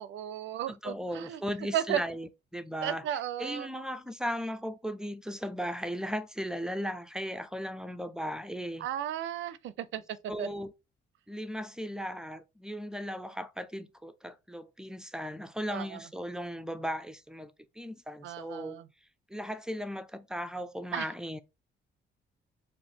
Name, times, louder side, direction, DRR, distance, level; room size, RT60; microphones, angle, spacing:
voice 1, 0.0-1.4 1.7-2.0 2.8-3.7 8.8-10.5 15.7-16.1 18.2-18.9 20.9-21.1, right 10 dB, 75° right, 0.5 m, -35 dB
voice 2, 0.7-3.0 3.4-8.9 10.3-10.7 11.3-18.8 19.3-21.4, equal, 5° right, 0.4 m, -37 dB
4.4 x 2.6 x 2.8 m
cardioid pair, 90°, 20 cm